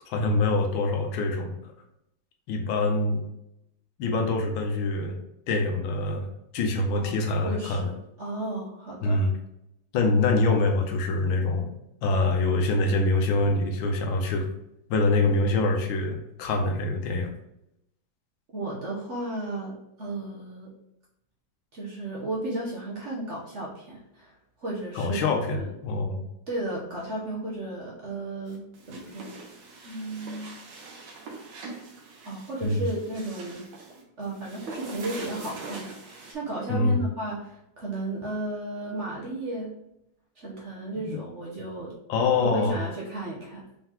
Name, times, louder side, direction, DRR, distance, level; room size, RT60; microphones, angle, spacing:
voice 1, 0.1-1.6 2.5-3.2 4.0-5.2 5.5-7.9 9.0-9.3 9.9-11.7 12.0-14.5 14.9-17.3 24.9-26.2 32.6-32.8 36.7-37.0 41.0-41.2 42.1-42.8, left 2 dB, 85° left, 3 dB, 1.5 m, -25 dB
voice 2, 6.9-7.9 8.2-9.2 18.5-20.7 21.7-24.3 24.6-25.7 26.5-29.4 29.8-30.6 32.2-33.6 34.2-39.7 40.4-41.9 42.4-43.6, right 1 dB, 50° right, -4 dB, 0.9 m, -34 dB
sound 1, 28.5-36.3, right 3 dB, 70° right, 1.6 m, -43 dB
4.4 x 3.8 x 2.9 m, 0.81 s
omnidirectional pair, 2.1 m